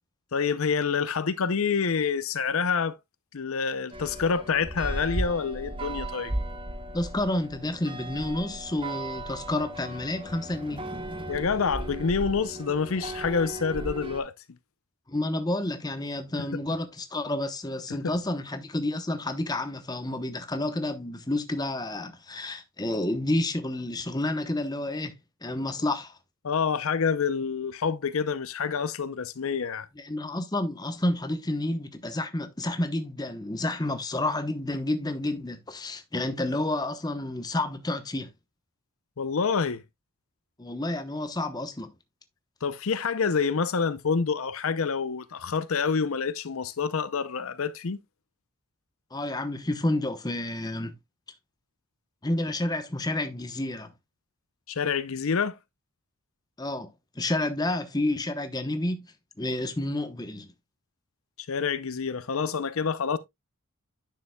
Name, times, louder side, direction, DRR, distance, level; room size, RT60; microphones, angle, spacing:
voice 1, 0.3-3.0 3.3-6.3 11.3-14.3 17.9-18.1 26.4-29.9 39.2-39.8 42.6-48.0 54.7-55.5 61.5-63.2, left 5 dB, 70° left, 0.6 m, -27 dB
sound 1, 3.9-14.2, right 1 dB, 25° right, 1.1 m, -36 dB
voice 2, 6.9-10.8 15.1-25.1 25.4-26.2 29.9-38.3 40.6-41.9 49.1-50.9 52.2-53.9 56.6-59.1 59.4-60.5, left 1 dB, 15° left, 0.9 m, -30 dB
9.8 x 6.8 x 2.3 m
head